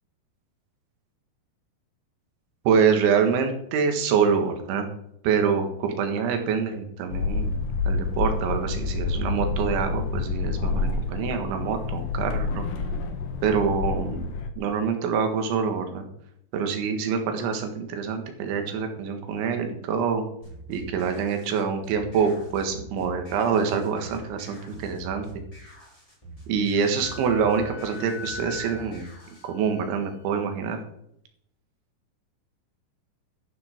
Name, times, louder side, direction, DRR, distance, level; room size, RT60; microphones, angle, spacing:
voice 1, 2.7-4.9 5.2-7.6 7.9-12.6 13.4-14.3 14.6-16.0 16.5-20.2 20.7-25.3 26.5-29.1 29.4-30.8, right 6 dB, 85° right, 5 dB, 4.2 m, -25 dB
sound 1, 7.1-14.5, left 4 dB, 60° left, 2.8 m, -28 dB
sound 2, 20.4-29.5, right 1 dB, 5° left, 5.4 m, -45 dB
Wind instrument woodwind instrument, 27.0-30.4, left 5 dB, 75° left, 4.8 m, -41 dB
12.5 x 11.5 x 4.6 m, 0.75 s
omnidirectional pair, 5.2 m